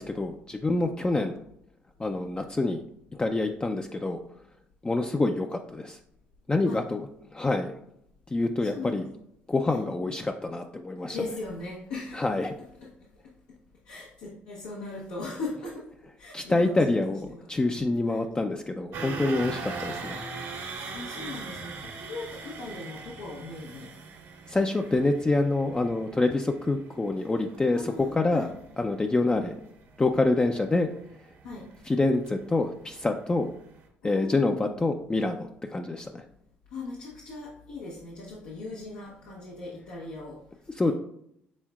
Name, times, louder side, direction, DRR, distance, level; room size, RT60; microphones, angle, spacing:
voice 1, 0.0-1.4 2.0-2.8 3.1-4.2 4.8-6.0 6.5-7.0 7.3-7.7 8.3-9.1 9.5-11.2 12.1-12.5 16.3-20.2 24.5-28.5 28.8-29.6 30.0-30.9 31.9-33.5 34.0-36.2 40.8-40.9, left 2 dB, 20° left, 4 dB, 0.4 m, -26 dB
voice 2, 8.6-9.1 9.7-9.9 11.1-12.2 12.8-12.9 13.9-15.8 16.2-17.5 18.1-18.3 19.4-19.8 20.9-23.9 27.7-28.5 31.4-31.7 34.0-34.8 36.7-40.4 40.8-40.9, left 3 dB, 85° left, -5 dB, 0.9 m, -39 dB
sound 1, 18.9-33.0 33.3-33.5 33.8-33.9, right 4 dB, 75° right, 1.3 m, -41 dB
6.2 x 3.5 x 2.3 m, 0.74 s
supercardioid pair, 60°, 5 cm